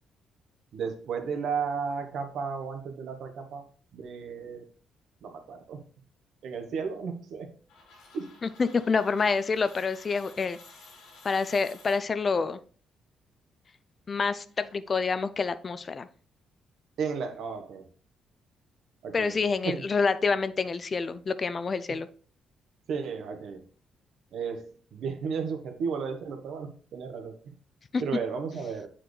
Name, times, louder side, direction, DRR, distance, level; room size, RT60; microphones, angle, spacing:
voice 1, 0.7-3.6 3.9-4.6 5.2-5.8 6.4-7.5 8.1-8.2 17.0-17.8 19.0-19.4 19.6-19.7 22.9-23.6 24.3-24.7 24.9-27.5 28.0-28.9, right 5 dB, 70° right, 6 dB, 1.1 m, -33 dB
sound 1, 7.7-12.5, left 3 dB, 85° left, 2.4 m, -53 dB
voice 2, 8.4-10.6 11.2-12.6 14.1-16.1 19.1-22.1 27.9-28.0, left 4 dB, 40° left, 14 dB, 0.5 m, -27 dB
7.6 x 4.3 x 3.2 m, 0.41 s
cardioid pair, 90°, 0 cm